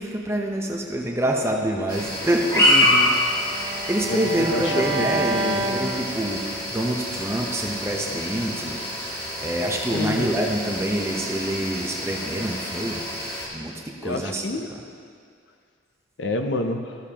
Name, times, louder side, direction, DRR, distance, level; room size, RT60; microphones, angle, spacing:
voice 1, 0.0-2.7 3.6-6.4 6.7-13.1 13.5-14.4, right 1 dB, 15° right, 0 dB, 0.7 m, -26 dB
sound 1, 1.9-13.5, left 1 dB, 20° left, 1.6 m, -27 dB
Bowed string instrument, 2.4-6.6, right 2 dB, 60° right, 0.9 m, -30 dB
voice 2, 2.6-3.1 4.1-5.7 9.9-10.3 14.0-14.7 16.2-17.0, left 2 dB, 70° left, 6 dB, 0.6 m, -28 dB
14.0 x 6.6 x 2.9 m, 2.2 s
head